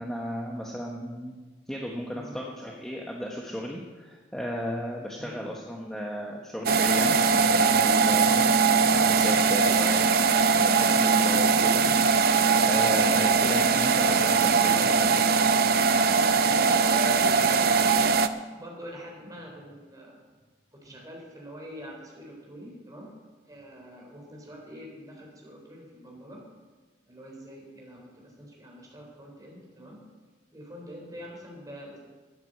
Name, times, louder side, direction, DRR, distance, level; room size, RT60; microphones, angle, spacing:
voice 1, 0.0-1.4 1.7-8.6 8.9-10.1 10.6-12.2 12.6-15.2, equal, 5° left, -2 dB, 1.1 m, -34 dB
voice 2, 5.1-5.5 9.5-9.7 16.4-18.1 18.5-20.2 20.7-23.1 23.5-26.4 27.1-30.0 30.5-32.0, equal, 20° right, 0 dB, 3.7 m, -43 dB
sound 1, 6.7-18.3, right 5 dB, 55° right, 0.6 m, -21 dB
12.0 x 9.6 x 7.8 m, 1.3 s
head